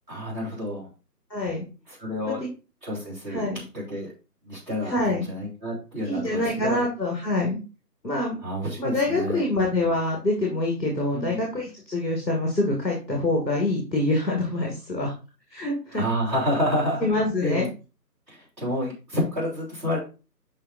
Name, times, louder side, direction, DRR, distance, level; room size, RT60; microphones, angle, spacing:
voice 1, 0.1-0.9 1.9-2.4 2.8-4.1 4.4-6.8 8.4-9.4 11.1-11.4 15.9-17.7 18.3-20.0, equal, 25° right, -6 dB, 3.2 m, -29 dB
voice 2, 1.3-1.6 2.2-2.3 3.3-3.6 4.9-5.2 6.0-7.6 8.0-8.4 8.8-15.1 15.5-16.0 17.0-17.7, left 2 dB, ahead, -2 dB, 1.4 m, -25 dB
8.7 x 5.6 x 2.6 m, 0.33 s
figure-of-eight pair, 145°, 50 cm